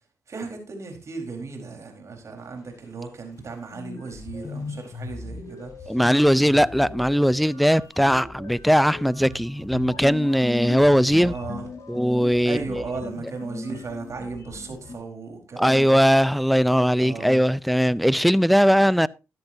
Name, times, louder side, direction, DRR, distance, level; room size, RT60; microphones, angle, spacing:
voice 1, 0.3-6.0 11.2-11.7 12.4-16.0 17.0-17.4 18.7-18.8, right 4 dB, 55° right, 4.4 m, -36 dB
sound 1, 3.4-3.5 3.7-15.0, left 3 dB, 60° left, 4.0 m, -38 dB
voice 2, 5.9-11.4 11.9-12.8 15.6-19.1, equal, ahead, 0.5 m, -19 dB
13.5 x 10.5 x 2.8 m
supercardioid pair, 50°, 6 cm